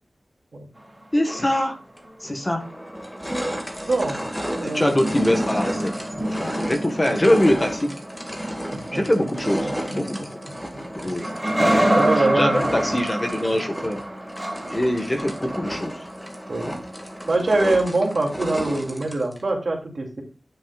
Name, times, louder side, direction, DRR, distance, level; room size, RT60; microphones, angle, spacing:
sound 1, 0.8-2.0 4.8-10.6 11.2-16.3 18.7-18.8, right 1 dB, 10° right, 2.8 m, -27 dB
voice 1, 1.1-1.8 2.2-2.7 4.6-5.9 6.2-7.9 8.9-10.4 11.0-11.3 12.1-14.0 14.7-16.0, left 1 dB, 25° left, 5 dB, 1.4 m, -23 dB
sound 2, 2.0-2.1 2.6-19.4, equal, 5° left, 1.9 m, -33 dB
voice 2, 3.8-4.2 4.6-5.0 8.7-9.0 9.6-10.0 10.4-10.5 11.0-11.1 11.9-12.6 16.5-16.7 17.3-20.2, right 2 dB, 60° right, 1 dB, 2.5 m, -23 dB
9.3 x 7.1 x 2.4 m, 0.34 s
wide cardioid pair, 85°, 0 cm